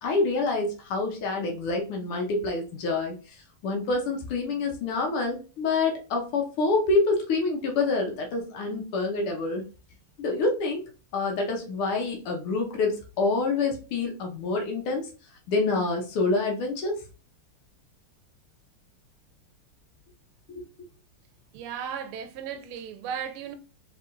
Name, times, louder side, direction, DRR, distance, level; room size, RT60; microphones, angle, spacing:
voice 1, 0.0-3.1 3.6-9.6 10.2-10.8 11.1-15.1 15.5-17.0, left 3 dB, 85° left, 1.8 m, -27 dB
voice 2, 21.5-23.5, right 8 dB, 80° right, 1.5 m, -35 dB
4.7 x 3.6 x 2.5 m
omnidirectional pair, 2.4 m